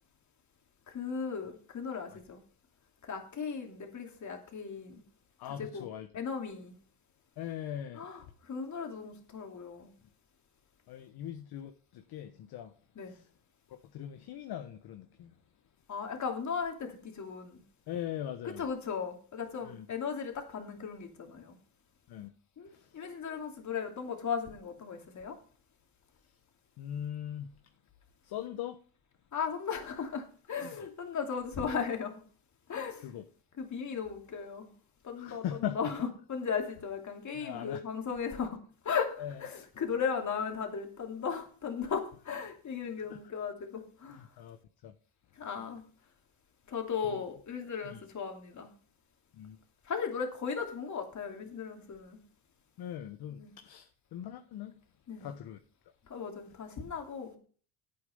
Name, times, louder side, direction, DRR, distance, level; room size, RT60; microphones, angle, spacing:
voice 1, 0.9-2.4 3.0-5.0 5.5-5.9 6.1-6.7 7.9-9.9 13.0-13.2 15.9-17.6 18.4-21.6 22.6-25.4 29.3-32.2 32.7-33.1 33.6-34.7 35.0-44.3 45.4-45.8 46.7-48.7 49.8-52.2 53.3-53.5 55.1-55.3 56.1-57.4, left 6 dB, 40° left, 2.8 m, -36 dB
voice 2, 5.4-6.1 7.4-8.0 10.9-12.7 13.0-13.3 13.7-15.3 17.9-18.6 19.6-19.9 22.1-22.3 22.7-22.9 26.8-27.6 28.2-28.8 30.6-30.9 33.0-33.2 35.2-35.9 37.3-37.8 39.2-39.3 43.1-43.2 44.2-44.6 44.8-44.9 47.1-47.2 47.8-48.0 49.3-49.6 52.8-54.8 55.2-55.6, left 10 dB, 60° left, 1.2 m, -40 dB
10.0 x 8.6 x 5.5 m
supercardioid pair, 90°, 43 cm